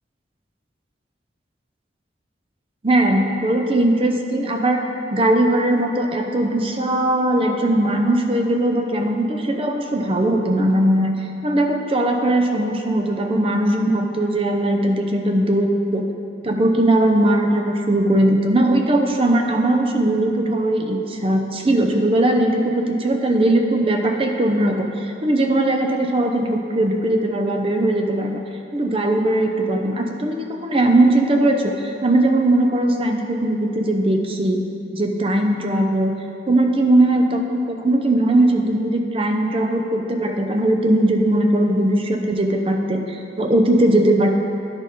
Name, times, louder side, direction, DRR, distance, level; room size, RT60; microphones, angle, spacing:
voice 1, 2.8-4.9 5.1-11.1 11.4-16.1 16.4-28.4 28.7-34.6 34.9-36.1 36.5-44.3, right 1 dB, 30° right, 3 dB, 0.6 m, -19 dB
10.5 x 5.3 x 3.8 m, 2.5 s
head